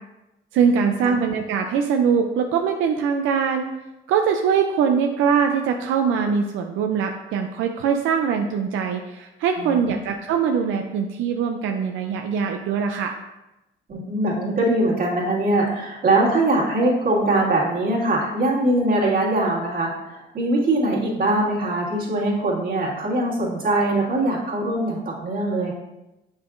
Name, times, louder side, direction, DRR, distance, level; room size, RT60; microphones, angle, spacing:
voice 1, 0.5-3.7 4.1-13.2, right 6 dB, 90° right, 4 dB, 0.5 m, -22 dB
voice 2, 9.6-10.0 13.9-25.7, right 2 dB, 45° right, -3 dB, 2.0 m, -22 dB
6.8 x 5.5 x 2.5 m, 0.95 s
cardioid pair, 90°, 20 cm